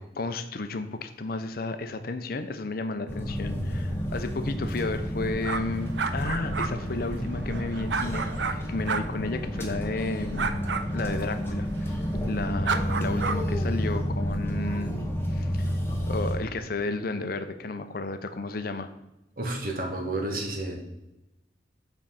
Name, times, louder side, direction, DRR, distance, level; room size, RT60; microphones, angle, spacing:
voice 1, 0.2-10.6 10.9-11.7 12.3-14.9 15.3-15.7 16.1-18.9, left 3 dB, 50° left, 9 dB, 0.6 m, -32 dB
sound 1, 3.1-16.4, equal, 10° left, 1.1 m, -30 dB
sound 2, 5.4-8.5 8.9-9.0 10.3-10.8 12.6-13.4, right 5 dB, 70° right, 0.5 m, -30 dB
voice 2, 19.4-20.8, right 2 dB, 50° right, 1 dB, 1.5 m, -31 dB
7.4 x 4.4 x 5.7 m, 0.93 s
head